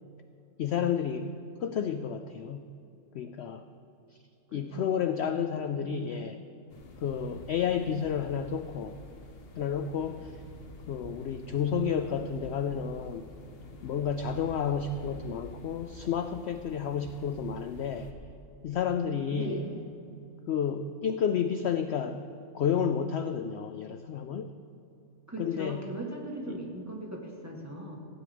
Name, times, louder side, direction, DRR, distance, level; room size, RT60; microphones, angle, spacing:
voice 1, 0.6-2.7 3.1-3.7 4.5-6.4 7.0-9.0 9.6-10.4 10.9-13.3 13.8-18.1 18.6-19.6 20.5-22.3 22.5-24.5 25.4-25.9 26.5-26.6, left 7 dB, 70° left, 9 dB, 0.6 m, -31 dB
voice 2, 4.5-5.2 5.8-6.1 19.3-19.8 25.3-28.0, right 1 dB, 10° right, -1 dB, 1.5 m, -39 dB
sound 1, 6.7-18.1, left 2 dB, 45° left, 1.0 m, -48 dB
15.5 x 9.2 x 5.1 m, 2.8 s
omnidirectional pair, 1.6 m